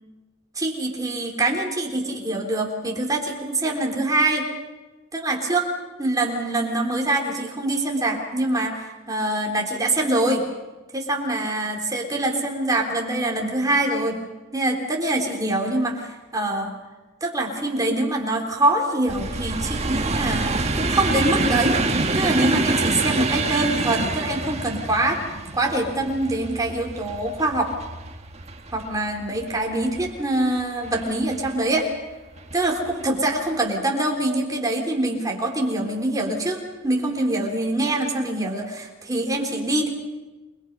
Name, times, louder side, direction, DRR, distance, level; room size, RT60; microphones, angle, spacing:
voice 1, 0.6-4.5 5.1-5.7 6.0-10.5 10.9-14.2 14.5-16.7 17.2-25.2 25.5-27.7 28.7-31.9 32.5-39.9, right 2 dB, 20° right, 0 dB, 3.8 m, -24 dB
sound 1, 19.1-30.2 30.8-31.5 32.4-32.6 32.9-33.0, right 3 dB, 35° right, 1.6 m, -26 dB
29.0 x 22.0 x 5.5 m, 1.2 s
head